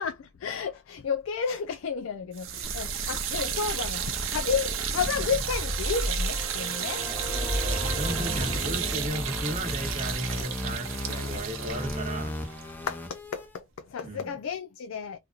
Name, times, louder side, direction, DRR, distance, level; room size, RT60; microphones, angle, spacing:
voice 1, 0.0-7.1 11.7-11.8 12.9-15.2, left 6 dB, 85° left, 0.4 m, -32 dB
sound 1, 2.3-13.4, right 9 dB, 90° right, 0.6 m, -33 dB
sound 2, 2.6-13.5, left 1 dB, 10° left, 0.5 m, -34 dB
sound 3, 5.3-9.7, equal, 25° left, 1.1 m, -38 dB
voice 2, 7.6-12.3 14.0-14.3, right 1 dB, 35° right, 0.8 m, -35 dB
2.8 x 2.5 x 2.3 m
head